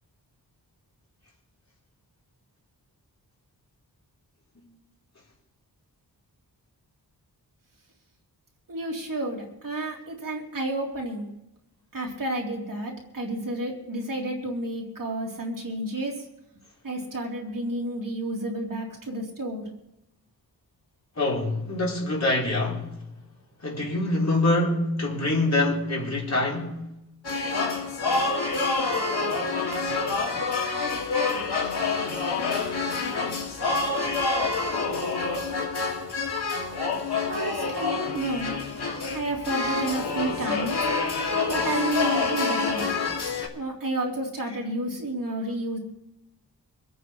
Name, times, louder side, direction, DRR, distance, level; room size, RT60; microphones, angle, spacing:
voice 1, 8.7-11.3 11.9-16.2 16.8-19.6 37.2-38.6 39.1-40.8 41.4-42.9 43.5-45.8, right 1 dB, 55° right, 3.4 m, -31 dB
voice 2, 21.2-22.8 23.6-26.8, left 2 dB, 45° left, 4.7 m, -25 dB
sound 1, 27.2-43.5, left 4 dB, 85° left, 2.7 m, -27 dB
25.0 x 9.0 x 4.7 m
wide cardioid pair, 130°, 39 cm